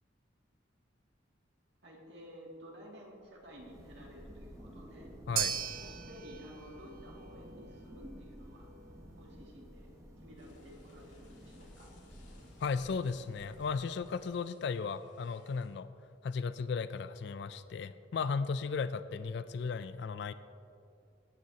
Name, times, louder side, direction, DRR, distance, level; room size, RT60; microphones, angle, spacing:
voice 1, 1.8-5.1 5.7-8.7 9.1-11.9, equal, 65° right, -2 dB, 2.3 m, -53 dB
Thunder, 3.2-14.3, equal, 15° right, 1.3 m, -52 dB
sound 1, 5.4-13.7, right 9 dB, 50° right, 0.6 m, -43 dB
sound 2, 10.4-15.7, left 2 dB, 80° left, 2.9 m, -64 dB
voice 2, 12.6-15.9 16.2-20.3, left 5 dB, 60° left, 13 dB, 0.3 m, -35 dB
17.5 x 9.4 x 2.8 m, 2.6 s
head